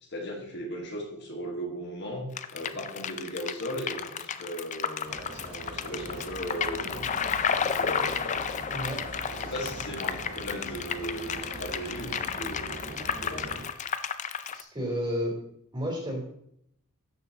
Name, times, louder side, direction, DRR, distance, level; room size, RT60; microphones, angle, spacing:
voice 1, 0.0-7.1 7.6-8.6 9.3-13.6, equal, 50° left, 1 dB, 1.6 m, -37 dB
sound 1, 2.4-14.6, left 7 dB, 35° left, 0.4 m, -32 dB
sound 2, 5.0-13.7, right 2 dB, 90° right, 2.7 m, -42 dB
voice 2, 8.7-9.1 14.5-15.4 15.7-16.2, equal, 20° right, -2 dB, 3.2 m, -31 dB
13.0 x 6.2 x 2.8 m, 0.71 s
head